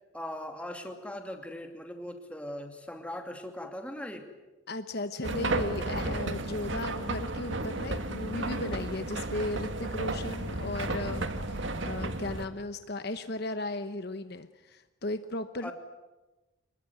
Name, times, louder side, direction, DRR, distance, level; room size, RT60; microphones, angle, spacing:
voice 1, 0.1-4.3 15.6-15.7, left 1 dB, 5° left, 4 dB, 2.6 m, -39 dB
voice 2, 4.7-15.7, left 2 dB, 50° left, 10 dB, 1.0 m, -36 dB
sound 1, 5.2-12.5, right 2 dB, 65° right, 2.0 m, -33 dB
25.0 x 21.5 x 9.5 m, 1.1 s
head